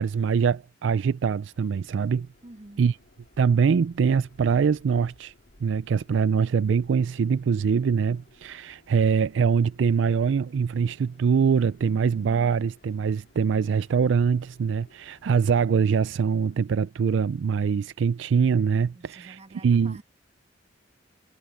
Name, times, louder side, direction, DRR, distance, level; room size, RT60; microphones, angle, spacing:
voice 1, 0.0-2.3 2.8-2.9 3.4-5.3 5.6-19.4 19.6-20.0, right 6 dB, 75° right, 0.4 m, -23 dB
Subway metro underground, 1.5-16.5, left 1 dB, 55° left, 2.2 m, -60 dB
voice 2, 2.4-2.9 18.9-20.0, right 1 dB, 35° right, 1.4 m, -46 dB
head